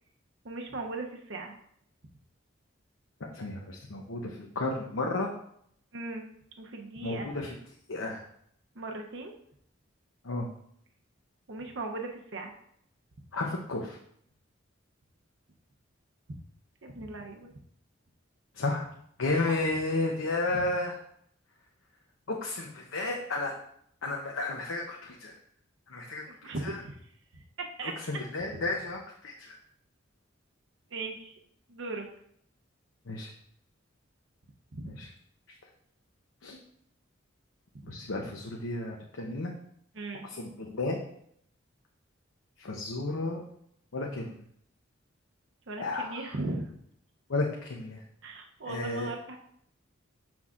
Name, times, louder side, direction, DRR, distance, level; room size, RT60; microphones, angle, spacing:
voice 1, 0.4-1.5 5.9-6.3 6.6-7.4 8.7-9.3 11.5-12.5 16.8-17.5 19.5-19.6 20.5-20.6 26.3-27.0 27.3-27.9 30.9-31.3 31.7-32.0 34.7-35.0 37.9-38.1 39.9-40.2 45.7-46.7 48.2-49.4, right 2 dB, 65° right, 2 dB, 0.7 m, -38 dB
voice 2, 3.3-5.3 7.0-7.5 7.9-8.2 10.2-10.5 13.3-14.0 18.5-18.9 19.2-21.0 22.3-23.5 24.0-25.3 25.9-26.2 26.6-26.8 27.8-29.5 33.1-33.3 34.9-35.1 36.4-36.6 37.8-39.5 40.2-41.0 42.6-43.4 43.9-44.4 45.8-46.2 47.3-48.0 48.7-49.1, left 2 dB, 85° left, 0 dB, 0.8 m, -32 dB
7.1 x 6.1 x 2.5 m, 0.68 s
head